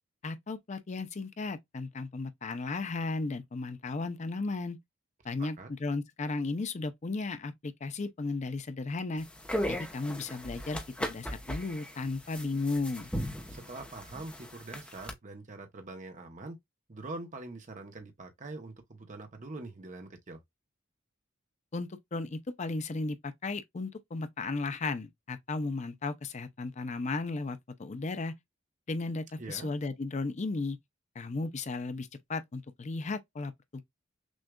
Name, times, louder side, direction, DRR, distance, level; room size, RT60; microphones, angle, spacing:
voice 1, 0.2-4.8 5.2-9.3 9.7-13.1 21.7-28.3 28.9-30.8 31.2-33.8, left 3 dB, 35° left, 0.5 m, -35 dB
voice 2, 5.4-5.7 13.5-16.6 16.9-20.4 29.4-29.7, right 2 dB, 40° right, 0.8 m, -44 dB
sound 1, 9.2-15.1, equal, 5° left, 0.8 m, -37 dB
6.2 x 2.4 x 2.2 m
head